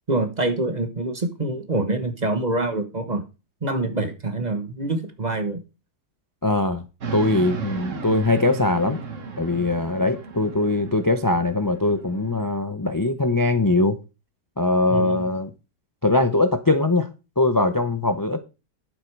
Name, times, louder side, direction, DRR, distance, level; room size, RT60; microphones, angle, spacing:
voice 1, 0.1-3.2 3.6-5.6 14.9-15.3, right 2 dB, 30° right, 1.2 m, -25 dB
voice 2, 6.4-6.8 7.1-9.0 9.4-14.0 14.6-15.5 16.0-17.1 17.4-18.4, left 2 dB, 20° left, 0.6 m, -21 dB
sound 1, 7.0-12.4, right 5 dB, 50° right, 1.8 m, -35 dB
11.5 x 7.6 x 4.7 m
omnidirectional pair, 1.7 m